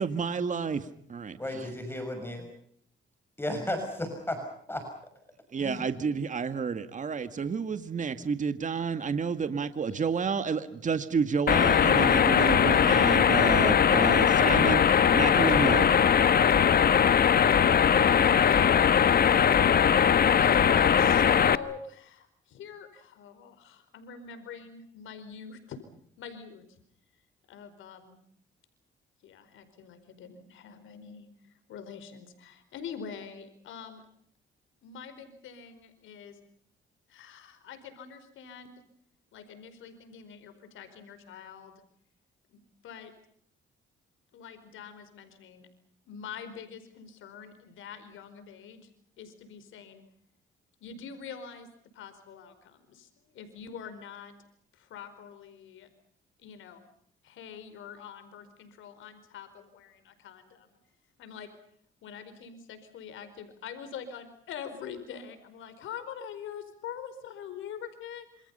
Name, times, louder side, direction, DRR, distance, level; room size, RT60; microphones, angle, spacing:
voice 1, 0.0-0.8 1.1-1.3 5.5-16.0, right 5 dB, 40° right, 10 dB, 2.0 m, -30 dB
voice 2, 1.4-2.5 3.4-4.4 4.7-4.8 5.6-6.1, left 1 dB, 10° left, 6 dB, 6.4 m, -34 dB
sound 1, 11.5-21.6, left 8 dB, 50° left, 1.3 m, -21 dB
voice 3, 17.7-19.8 20.3-25.8 26.2-26.6 27.5-28.2 29.2-34.0 34.8-36.4 37.1-38.8 39.3-41.8 42.5-43.1 44.3-45.7 46.1-48.9 49.2-50.0 50.8-54.3 54.7-55.9 56.4-56.8 57.2-60.7 61.2-61.5 62.0-68.5, left 7 dB, 80° left, 10 dB, 4.8 m, -44 dB
27.5 x 27.5 x 5.7 m, 0.65 s
cardioid pair, 90°, 20 cm